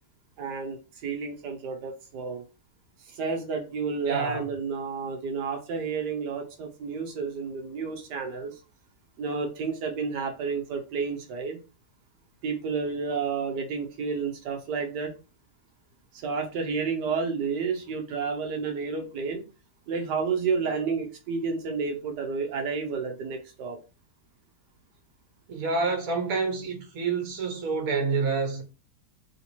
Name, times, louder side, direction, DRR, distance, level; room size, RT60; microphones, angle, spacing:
voice 1, 0.4-0.8 1.0-2.4 3.1-8.5 9.2-11.6 12.4-15.1 16.2-19.4 19.9-23.8, right 5 dB, 90° right, 1.4 m, -30 dB
voice 2, 4.1-4.4 25.5-28.6, right 4 dB, 60° right, 1.5 m, -28 dB
3.6 x 2.9 x 4.1 m
omnidirectional pair, 1.7 m